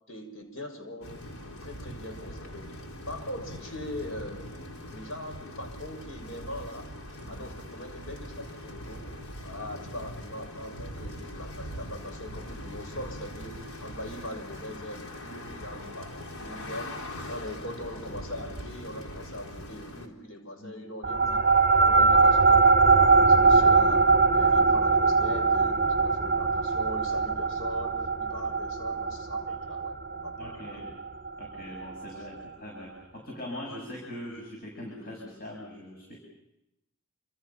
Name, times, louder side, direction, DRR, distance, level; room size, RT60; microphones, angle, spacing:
voice 1, 0.1-1.1 1.6-2.7 3.1-4.5 4.9-6.9 7.3-9.1 9.4-17.0 17.3-21.4 21.8-22.6 23.1-30.8, left 1 dB, 65° left, 4 dB, 7.0 m, -41 dB
sound 1, 1.0-20.1, equal, 85° left, 4.1 m, -41 dB
sound 2, 21.0-31.8, right 4 dB, 40° right, 0.9 m, -22 dB
voice 2, 21.9-22.2 30.4-31.0 31.4-36.2, left 1 dB, 40° left, -1 dB, 7.4 m, -42 dB
29.0 x 27.5 x 5.9 m, 0.87 s
head